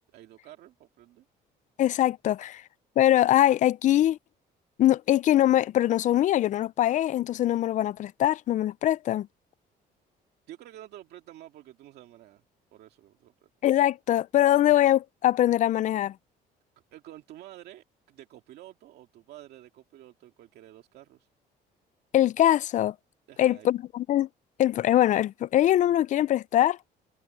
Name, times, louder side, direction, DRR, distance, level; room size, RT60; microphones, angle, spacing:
voice 1, 0.1-1.2 10.5-12.4 12.7-13.5 16.9-21.3 23.3-23.7, right 13 dB, 75° right, 2.1 m, -49 dB
voice 2, 1.8-2.6 3.0-4.2 4.8-9.3 13.6-16.1 22.1-22.9 23.4-24.3 24.6-26.8, left 12 dB, 45° left, 0.4 m, -22 dB
cardioid pair, 110°, 17 cm